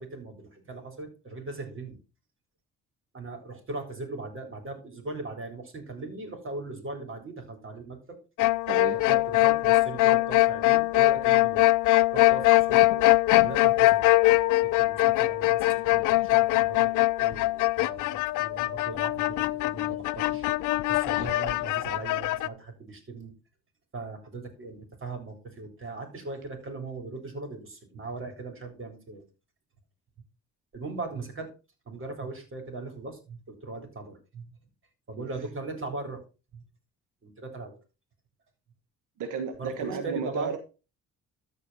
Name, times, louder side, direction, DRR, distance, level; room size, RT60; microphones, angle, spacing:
voice 1, 0.0-2.0 3.1-8.2 9.0-11.6 12.1-13.1 13.4-14.1 14.6-20.5 20.9-23.3 23.9-29.2 30.7-31.5 31.9-34.5 35.1-36.2 36.5-36.6 37.2-37.8 39.6-40.6, right 3 dB, 45° right, 5 dB, 3.7 m, -39 dB
sound 1, 8.4-22.5, left 18 dB, 80° left, 0.5 m, -22 dB
voice 2, 8.7-9.0 13.0-13.1 35.2-35.3 39.2-40.6, right 6 dB, 85° right, 6 dB, 1.4 m, -33 dB
13.5 x 4.6 x 4.1 m, 0.31 s
cardioid pair, 90°, 30 cm